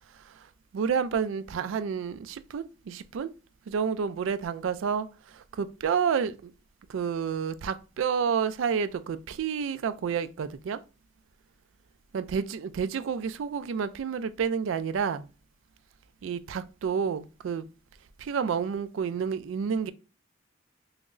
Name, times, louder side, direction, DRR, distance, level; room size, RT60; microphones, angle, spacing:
voice 1, 0.7-3.3 3.7-5.1 5.3-6.5 6.9-10.8 12.1-15.3 16.2-17.6 18.2-19.9, right 6 dB, 80° right, 0.3 m, -29 dB
5.8 x 2.0 x 2.5 m
head